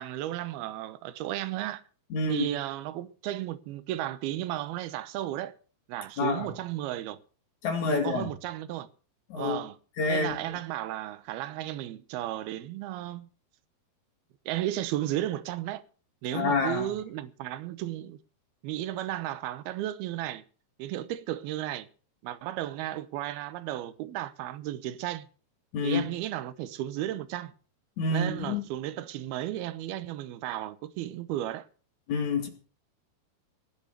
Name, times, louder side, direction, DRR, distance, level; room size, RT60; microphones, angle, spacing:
voice 1, 0.0-1.8 2.3-5.5 5.9-7.2 7.9-8.9 9.3-9.8 10.1-13.3 14.5-15.8 16.2-18.2 18.6-20.4 20.8-21.9 22.2-25.3 25.8-27.5 28.1-31.6, right 13 dB, 75° right, 2.7 m, -34 dB
voice 2, 2.1-2.5 6.2-6.5 7.6-8.3 9.3-9.6 10.0-10.4 16.3-16.9 25.7-26.0 28.0-28.6 32.1-32.5, left 4 dB, 50° left, 3.1 m, -28 dB
19.5 x 7.9 x 6.7 m
omnidirectional pair, 4.9 m